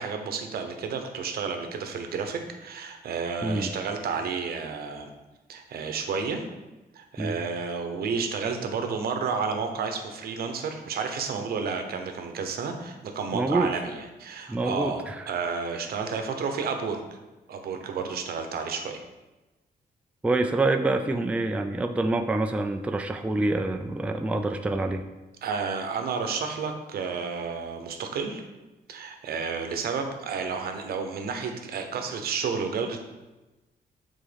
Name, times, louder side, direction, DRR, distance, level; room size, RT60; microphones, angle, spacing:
voice 1, 0.0-5.1 5.5-6.4 6.9-17.0 17.5-19.0 25.4-28.4 28.9-33.0, right 5 dB, 75° right, 5 dB, 0.9 m, -31 dB
voice 2, 13.3-13.7 14.5-15.2 20.2-25.0, right 2 dB, 10° right, 6 dB, 0.3 m, -26 dB
7.4 x 3.7 x 5.2 m, 1.1 s
cardioid pair, 140°, 16 cm